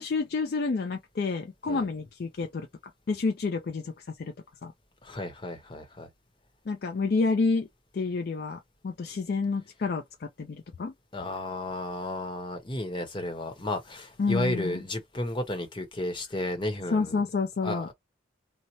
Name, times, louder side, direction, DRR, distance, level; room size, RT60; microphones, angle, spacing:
voice 1, 0.0-2.7 3.1-4.3 4.6-4.7 6.7-7.7 7.9-10.9 14.2-14.8 16.9-17.9, left 4 dB, 50° left, 0.4 m, -29 dB
voice 2, 5.0-6.1 11.1-17.2 17.6-17.9, left 1 dB, 25° left, 0.8 m, -33 dB
2.9 x 2.0 x 4.1 m
head